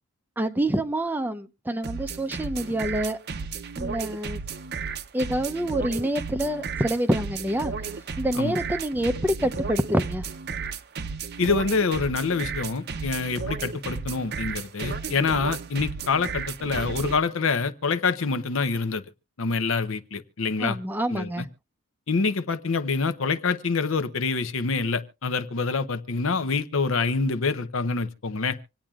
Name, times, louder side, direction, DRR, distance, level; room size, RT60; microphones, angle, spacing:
voice 1, 0.4-3.2 3.8-4.4 5.1-7.7 8.2-10.2 20.6-21.5, right 1 dB, 10° right, 0.6 m, -26 dB
sound 1, 1.8-17.2, right 5 dB, 45° right, 0.7 m, -33 dB
voice 2, 11.4-19.0 19.4-20.8 21.1-21.4 22.1-28.6, left 4 dB, 60° left, 0.7 m, -26 dB
26.0 x 8.8 x 2.4 m
head